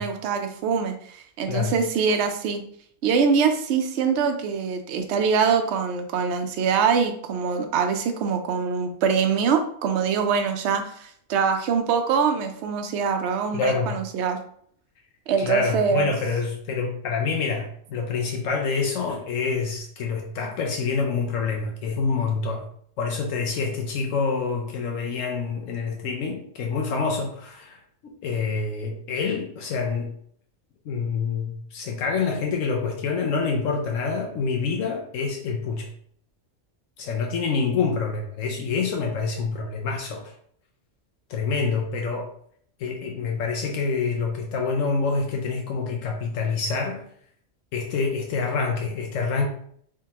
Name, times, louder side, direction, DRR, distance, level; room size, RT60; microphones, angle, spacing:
voice 1, 0.0-2.6 3.0-14.4 15.3-16.1, right 6 dB, 65° right, 6 dB, 0.8 m, -24 dB
voice 2, 13.5-14.0 15.4-22.7 23.0-30.1 30.9-35.9 37.0-40.3 41.3-42.3 42.8-47.0 47.7-49.5, left 4 dB, 80° left, 2 dB, 1.0 m, -27 dB
3.6 x 3.6 x 2.8 m, 0.62 s
omnidirectional pair, 1.3 m